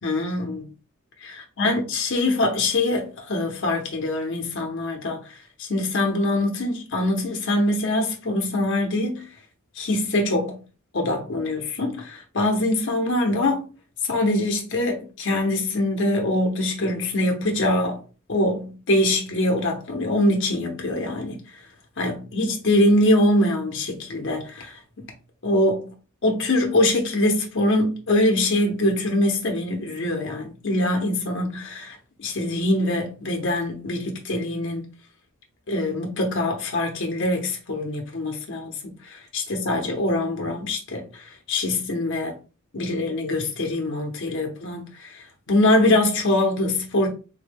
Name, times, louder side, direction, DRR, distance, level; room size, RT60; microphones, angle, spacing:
voice 1, 0.0-0.7 1.2-5.2 5.6-9.3 9.8-10.6 10.9-13.6 14.1-18.0 18.3-21.4 22.0-24.8 25.4-25.9 26.2-34.9 35.7-42.3 42.7-45.1 45.5-47.1, left 1 dB, 60° left, 0.7 m, -23 dB
3.5 x 2.1 x 3.4 m
head